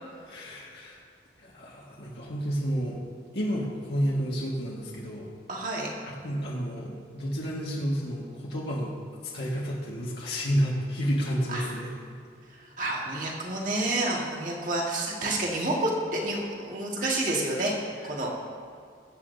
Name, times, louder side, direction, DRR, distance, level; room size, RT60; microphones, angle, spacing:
voice 1, 0.3-1.0 1.4-3.0 3.3-5.3 6.1-8.9 9.3-11.9, equal, 75° left, -5 dB, 1.7 m, -30 dB
voice 2, 5.5-5.9 11.5-11.7 12.6-17.7 18.0-18.3, right 1 dB, 45° right, -2 dB, 1.9 m, -29 dB
21.5 x 8.4 x 2.8 m, 2.3 s
head